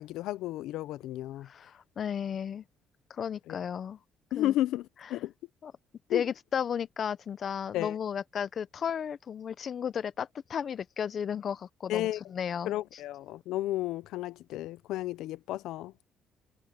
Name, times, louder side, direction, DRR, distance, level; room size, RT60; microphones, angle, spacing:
voice 1, 0.0-1.5 3.5-3.6 4.3-5.3 6.1-6.2 7.7-7.9 11.9-12.2 12.7-16.0, left 14 dB, 90° left, 0.5 m, -32 dB
voice 2, 1.4-2.6 3.1-4.0 4.3-4.6 5.0-5.2 5.6-5.7 6.1-13.0, left 8 dB, 45° left, 0.5 m, -34 dB
cardioid pair, 135°, 0 cm